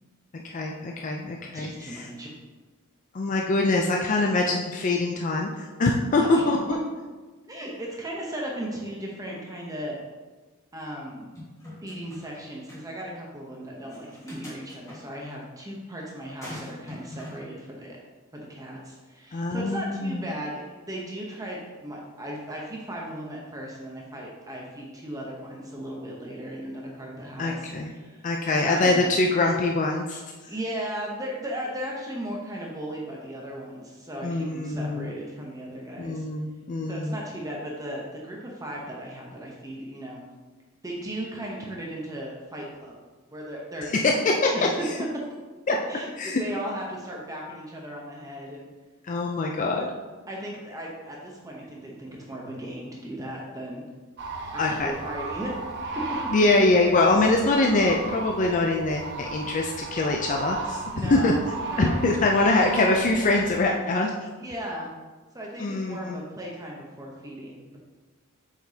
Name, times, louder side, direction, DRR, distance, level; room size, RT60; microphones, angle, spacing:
voice 1, 0.3-2.0 3.1-6.6 19.3-20.2 27.4-27.9 28.2-30.2 34.2-35.1 36.0-37.2 44.0-44.5 45.7-45.8 46.2-46.4 49.1-49.9 54.6-54.9 56.3-61.3 61.8-64.1 65.6-66.2, left 2 dB, 35° left, 1 dB, 0.4 m, -24 dB
voice 2, 1.5-2.3 6.2-6.5 7.4-10.0 10.7-11.3 11.8-18.0 18.3-29.0 30.5-36.2 36.9-40.2 40.8-43.0 43.3-43.9 44.5-44.9 45.9-48.7 50.3-53.8 54.5-55.5 60.9-62.0 64.4-64.9 65.3-67.8, right 1 dB, 15° right, -2 dB, 0.8 m, -36 dB
sound 1, 11.4-12.4 12.7-12.8 13.9-15.0 16.4-17.4, left 1 dB, 15° left, 1.6 m, -42 dB
sound 2, 54.2-63.6, right 3 dB, 55° right, 0.7 m, -36 dB
7.5 x 4.9 x 2.8 m, 1.3 s
head